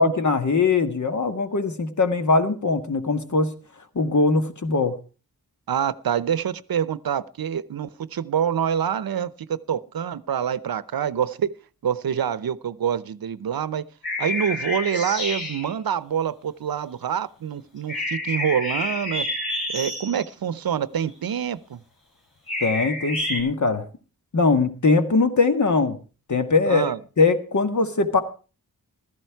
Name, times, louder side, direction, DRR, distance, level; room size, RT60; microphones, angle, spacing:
voice 1, 0.0-3.5 4.0-4.9 22.6-23.9 24.3-26.0 26.3-26.9 27.2-28.2, left 3 dB, 55° left, 8 dB, 1.7 m, -21 dB
voice 2, 5.7-11.5 11.8-13.8 14.2-19.3 19.7-21.8 26.7-27.0, right 8 dB, 75° right, 18 dB, 0.8 m, -26 dB
sound 1, 14.0-15.7 17.9-20.3 22.5-23.4, left 1 dB, 85° left, 7.2 m, -29 dB
15.5 x 13.5 x 4.6 m, 0.37 s
wide cardioid pair, 120°, 36 cm